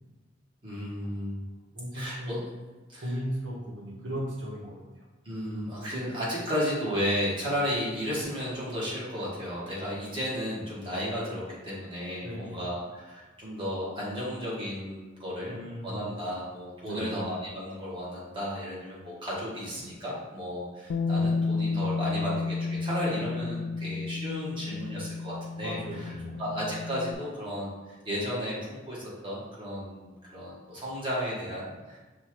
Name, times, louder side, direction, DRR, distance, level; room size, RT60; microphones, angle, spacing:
voice 1, 0.6-1.4 1.9-2.4 2.9-3.0 5.2-15.5 15.8-26.1 26.4-32.0, equal, 25° right, -7 dB, 1.3 m, -33 dB
voice 2, 1.7-2.4 3.0-5.0 12.2-12.6 15.5-16.0 16.8-17.2 25.6-26.4, equal, 75° right, -4 dB, 1.3 m, -36 dB
Bass guitar, 20.9-27.1, left 4 dB, 85° left, 0.3 m, -31 dB
5.4 x 2.4 x 3.0 m, 1.2 s
head